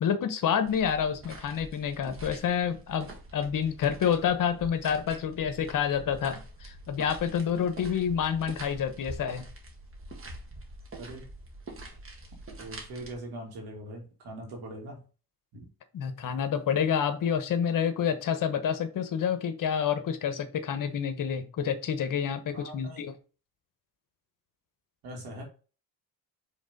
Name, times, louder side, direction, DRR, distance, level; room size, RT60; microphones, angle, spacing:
voice 1, 0.0-9.4 15.9-23.1, left 8 dB, 55° left, 10 dB, 1.1 m, -28 dB
sound 1, 0.6-13.1, right 2 dB, 35° right, 1.7 m, -45 dB
voice 2, 12.6-15.0 15.5-15.7 22.5-23.1 25.0-25.4, right 1 dB, 80° right, 1 dB, 2.5 m, -41 dB
5.1 x 3.5 x 5.3 m, 0.36 s
cardioid pair, 90°, 37 cm